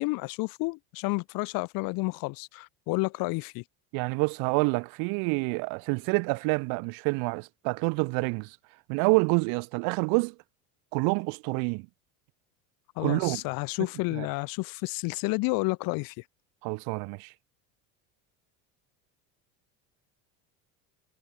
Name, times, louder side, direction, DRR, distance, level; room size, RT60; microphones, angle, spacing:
voice 1, 0.0-3.6 13.0-16.1, left 26 dB, 70° left, 1.9 m, -30 dB
voice 2, 3.9-8.6 8.9-10.3 10.9-11.9 13.0-13.4 14.1-14.3 16.6-17.3, right 33 dB, 75° right, 2.0 m, -27 dB
supercardioid pair, 110°, 35 cm